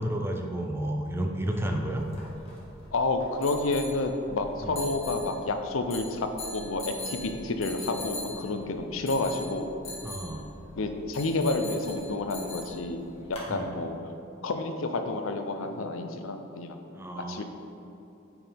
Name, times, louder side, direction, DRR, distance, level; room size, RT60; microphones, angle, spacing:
voice 1, 0.0-2.1 4.6-4.8 10.0-10.4 13.5-13.7 16.9-17.4, right 1 dB, 10° right, 2 dB, 0.5 m, -31 dB
sound 1, 1.9-13.5, left 2 dB, 30° left, 1.5 m, -43 dB
voice 2, 2.9-9.7 10.8-13.0 13.3-14.1 14.4-16.8 17.2-17.4, left 2 dB, 85° left, 6 dB, 0.6 m, -30 dB
8.9 x 4.7 x 3.5 m, 2.8 s
head